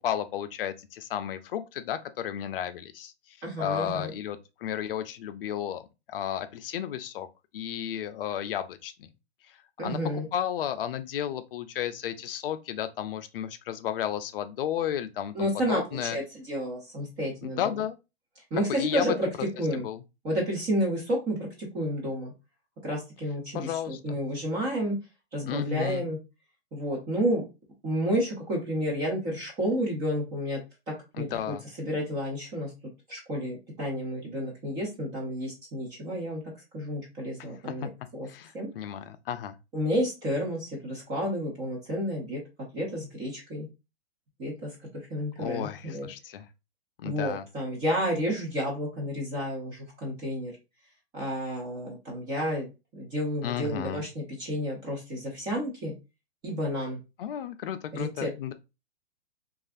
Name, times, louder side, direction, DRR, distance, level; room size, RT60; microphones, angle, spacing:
voice 1, 0.0-3.1 3.6-5.8 6.1-7.3 7.5-9.1 9.8-16.2 17.4-18.0 18.7-19.1 19.7-20.0 23.5-24.2 25.5-26.1 31.2-31.6 37.4-37.5 37.8-37.9 38.3-39.6 45.4-46.5 47.0-47.4 53.4-54.0 57.2-58.5, left 10 dB, 60° left, 0.5 m, -33 dB
voice 2, 3.4-4.1 9.8-10.3 15.3-17.7 18.5-19.3 19.6-19.9 20.2-22.3 22.8-25.0 25.3-26.2 26.7-27.5 27.8-30.6 30.9-31.4 31.8-32.7 33.1-36.4 36.7-38.3 38.5-38.7 39.7-42.4 42.7-43.7 44.4-44.7 45.1-46.1 47.0-50.5 51.1-52.7 52.9-55.9 56.4-57.0 57.9-58.5, equal, 10° right, 0.3 m, -31 dB
3.1 x 2.4 x 2.4 m
hypercardioid pair, 140°, 33 cm